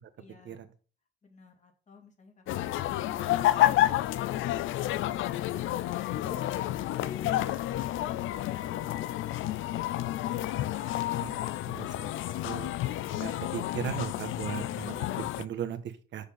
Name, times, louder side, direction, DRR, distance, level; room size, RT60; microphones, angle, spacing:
voice 1, 0.2-0.7 1.2-3.8 5.9-6.4 7.0-8.3, left 4 dB, 35° left, 3 dB, 2.7 m, -52 dB
sound 1, 2.5-15.5, left 14 dB, 80° left, 0.5 m, -30 dB
voice 2, 11.7-12.1 12.4-12.7 13.1-16.2, right 9 dB, 70° right, 9 dB, 1.4 m, -37 dB
6.9 x 6.7 x 5.7 m, 0.37 s
cardioid pair, 90°, 20 cm